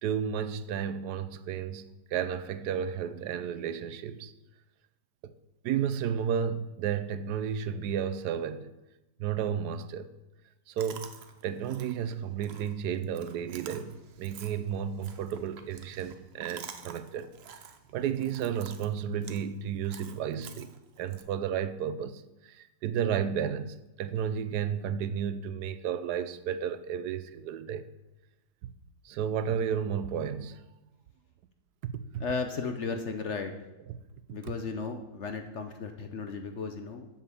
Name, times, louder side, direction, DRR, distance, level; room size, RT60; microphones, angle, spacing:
voice 1, 0.0-1.9 2.1-4.3 5.2-5.3 5.6-8.7 9.2-10.1 10.7-17.6 17.9-27.9 28.6-28.7 29.0-30.6 31.8-32.2 34.4-34.5, right 8 dB, 70° right, 1.1 m, -32 dB
Chewing mastication, 10.8-21.2, right 6 dB, 55° right, 0.7 m, -50 dB
voice 2, 32.2-33.5 34.3-37.1, left 4 dB, 60° left, 0.7 m, -35 dB
7.6 x 7.2 x 7.0 m
omnidirectional pair, 1.9 m